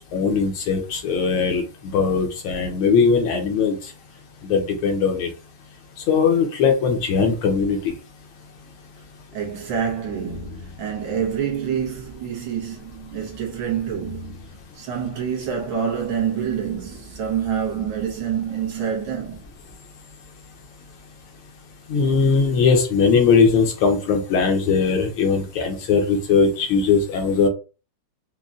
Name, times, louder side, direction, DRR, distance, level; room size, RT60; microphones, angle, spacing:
voice 1, 0.1-3.8 4.4-5.3 6.1-7.9 21.9-27.5, left 5 dB, 75° left, 1.6 m, -19 dB
voice 2, 9.3-19.4, right 8 dB, 70° right, 1.8 m, -27 dB
5.2 x 2.3 x 2.4 m
omnidirectional pair, 2.3 m